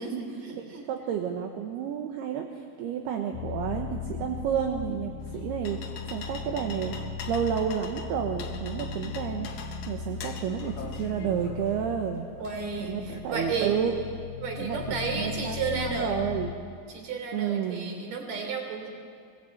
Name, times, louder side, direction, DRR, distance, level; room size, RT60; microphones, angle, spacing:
voice 1, 0.0-0.8 12.4-13.7 14.4-16.2 16.9-18.9, right 4 dB, 40° right, 4 dB, 3.8 m, -33 dB
voice 2, 0.9-5.8 6.1-7.0 7.3-9.5 9.8-12.2 12.8-13.9 14.6-16.5 17.3-17.9, right 8 dB, 70° right, 3 dB, 2.8 m, -31 dB
sound 1, 3.3-16.5, left 7 dB, 85° left, 3.2 m, -38 dB
sound 2, 5.2-13.2, left 6 dB, 65° left, 2.7 m, -44 dB
24.5 x 18.5 x 8.7 m, 2.1 s
omnidirectional pair, 5.5 m